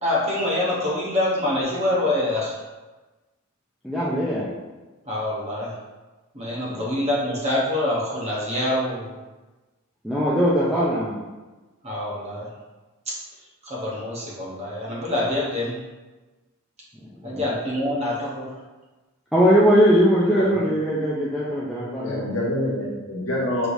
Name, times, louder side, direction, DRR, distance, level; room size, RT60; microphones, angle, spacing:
voice 1, 0.0-2.5 5.1-5.7 6.3-9.1 11.8-12.5 13.1-13.2 13.6-15.8 17.2-18.5, left 1 dB, 30° right, -5 dB, 0.9 m, -25 dB
voice 2, 3.8-4.5 6.7-6.8 10.0-11.2 17.2-17.5 19.3-22.4, equal, ahead, -9 dB, 0.4 m, -20 dB
voice 3, 22.0-23.7, left 1 dB, 60° left, -5 dB, 1.2 m, -26 dB
4.7 x 3.3 x 2.6 m, 1.2 s
head